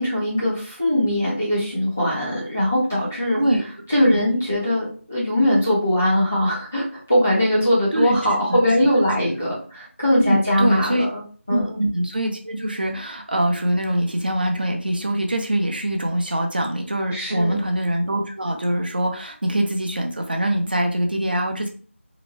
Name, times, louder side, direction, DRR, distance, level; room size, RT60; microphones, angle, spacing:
voice 1, 0.0-3.4 3.9-11.2 11.5-11.8 17.1-17.6, left 1 dB, 10° left, -8 dB, 0.4 m, -21 dB
voice 2, 10.2-11.1 11.5-21.7, right 1 dB, 45° right, 4 dB, 0.5 m, -23 dB
2.8 x 2.1 x 2.9 m, 0.41 s
figure-of-eight pair, 175°, 7 cm